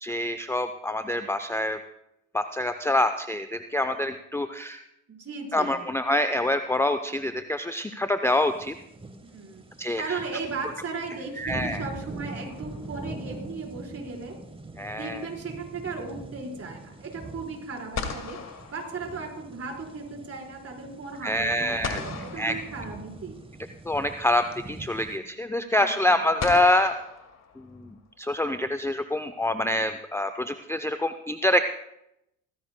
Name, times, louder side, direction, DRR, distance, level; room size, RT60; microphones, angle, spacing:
voice 1, 0.0-1.8 2.3-4.8 5.5-8.7 9.8-10.2 11.4-11.8 14.8-15.2 21.2-22.0 22.4-22.5 23.9-26.9 27.8-27.9 28.2-31.8, left 1 dB, 5° left, 8 dB, 0.6 m, -26 dB
voice 2, 5.1-5.9 9.2-9.6 10.0-14.3 14.9-18.4 18.7-23.4 25.7-26.3, right 4 dB, 35° right, 0 dB, 4.3 m, -36 dB
sound 1, 8.4-25.2, right 2 dB, 15° right, 1.2 m, -43 dB
sound 2, 12.5-13.3 17.4-17.5 17.9-19.7 21.8-23.4 24.8-24.9 26.4-28.0, left 5 dB, 40° left, 2.0 m, -38 dB
17.5 x 15.0 x 2.2 m, 0.82 s
hypercardioid pair, 60°, 41 cm